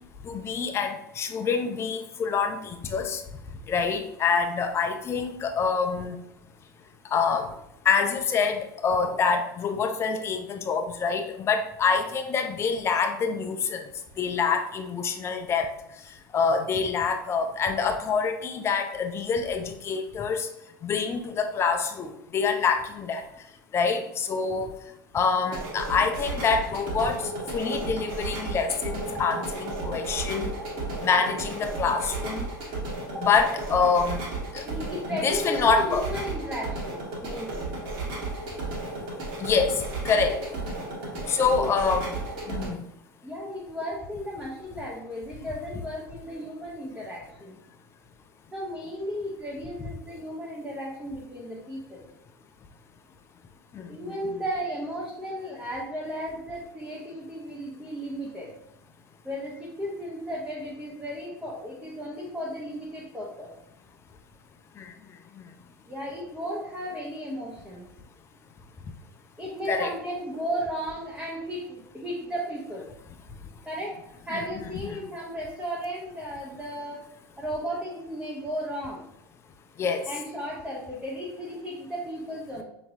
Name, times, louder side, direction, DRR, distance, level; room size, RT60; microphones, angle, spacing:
voice 1, 0.2-3.2 3.7-6.2 7.1-7.5 7.9-13.8 14.2-15.7 16.3-20.5 20.8-23.2 23.7-24.7 25.1-27.2 27.5-30.5 31.0-32.5 33.2-34.2 34.5-34.6 35.1-36.0 39.4-40.4 41.3-42.1 42.5-42.8 53.8-53.9 64.8-64.9 69.7-69.9 74.3-74.4 74.8-75.0 79.8-80.0, left 5 dB, 20° left, 5 dB, 0.5 m, -26 dB
sound 1, 25.4-42.7, right 2 dB, 45° right, 1.4 m, -34 dB
voice 2, 34.6-37.6 41.6-41.7 43.2-47.6 48.5-52.1 53.9-58.5 59.2-63.5 65.9-67.9 69.4-72.9 73.7-74.0 74.3-77.1 77.4-79.0 80.1-82.6, equal, 5° right, -5 dB, 0.9 m, -35 dB
5.7 x 3.0 x 2.6 m, 0.82 s
figure-of-eight pair, 80°, 11 cm